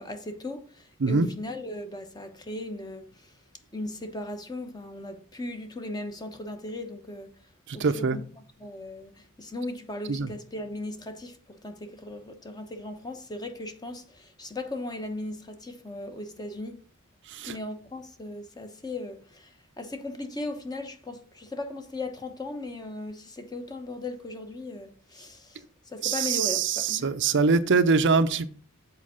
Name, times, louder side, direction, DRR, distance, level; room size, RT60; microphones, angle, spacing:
voice 1, 0.0-3.3 3.7-7.3 7.7-16.8 17.5-27.1, left 2 dB, 20° left, 1.0 m, -37 dB
voice 2, 7.7-8.2 10.1-10.3 17.3-17.6 26.0-28.5, right 4 dB, 55° right, 0.6 m, -23 dB
7.5 x 4.6 x 6.2 m
head